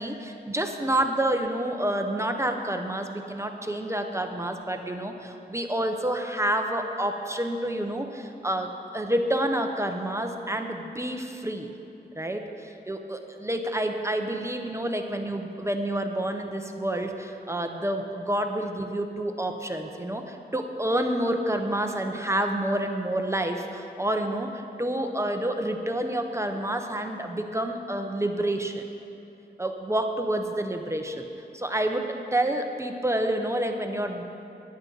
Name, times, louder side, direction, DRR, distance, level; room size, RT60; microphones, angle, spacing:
voice 1, 0.0-11.7 12.1-28.8 29.6-31.2 31.5-34.2, right 1 dB, 15° right, 4 dB, 0.7 m, -28 dB
15.5 x 10.5 x 3.9 m, 2.7 s
wide cardioid pair, 100°, 18 cm